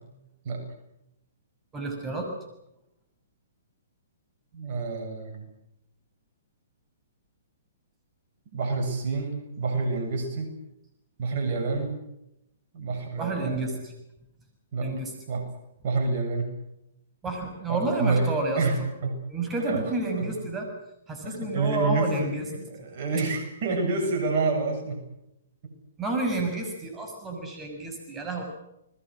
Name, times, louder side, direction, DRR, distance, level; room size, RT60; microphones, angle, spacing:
voice 1, 1.7-2.3 13.2-13.9 14.8-15.1 17.2-18.6 19.3-20.7 21.1-22.5 26.0-28.4, right 2 dB, 15° right, 3 dB, 6.5 m, -30 dB
voice 2, 4.5-5.5 8.5-10.5 11.2-12.0 12.7-13.8 14.7-14.9 15.3-15.5 15.8-16.5 17.7-19.2 19.7-20.3 21.2-25.0 25.6-25.7, right 3 dB, 50° right, 4 dB, 7.5 m, -28 dB
30.0 x 21.5 x 6.3 m, 0.84 s
hypercardioid pair, 125°, 0 cm